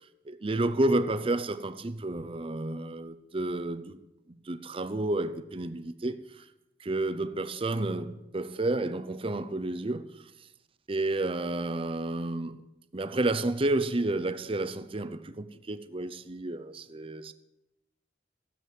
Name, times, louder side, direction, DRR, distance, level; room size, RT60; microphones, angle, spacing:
voice 1, 0.3-4.0 4.3-6.4 6.8-10.2 10.9-12.6 12.9-17.3, right 2 dB, 30° right, 0.6 m, -31 dB
14.5 x 7.5 x 8.4 m
head